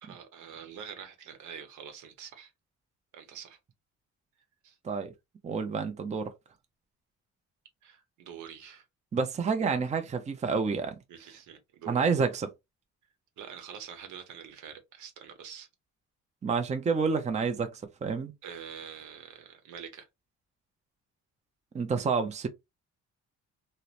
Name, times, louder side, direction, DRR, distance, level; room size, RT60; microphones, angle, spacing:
voice 1, 0.0-2.5 3.1-3.6 4.6-4.8 7.8-8.8 11.1-12.1 13.4-15.7 18.4-20.1, right 8 dB, 80° right, 0.8 m, -45 dB
voice 2, 5.4-6.3 9.1-10.9 11.9-12.5 16.4-17.7 18.0-18.3 21.7-22.5, right 5 dB, 25° right, 0.5 m, -28 dB
2.9 x 2.0 x 2.4 m
cardioid pair, 90°, 30 cm